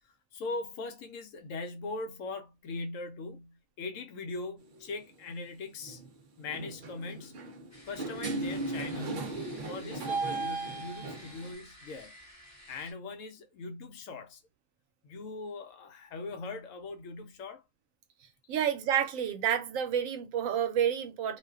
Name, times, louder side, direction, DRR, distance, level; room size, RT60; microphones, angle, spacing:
voice 1, 0.0-6.0 6.4-7.4 7.8-9.4 9.7-12.1 12.7-14.4 15.0-17.6 18.5-18.6, left 3 dB, 75° left, 0.9 m, -40 dB
sound 1, 4.6-4.9 5.8-6.1 6.4-11.5, right 3 dB, 55° right, 0.6 m, -36 dB
sound 2, 7.7-12.9, left 1 dB, 25° left, 0.4 m, -53 dB
voice 2, 18.5-21.4, right 9 dB, 85° right, 1.0 m, -29 dB
2.4 x 2.2 x 2.2 m
omnidirectional pair, 1.4 m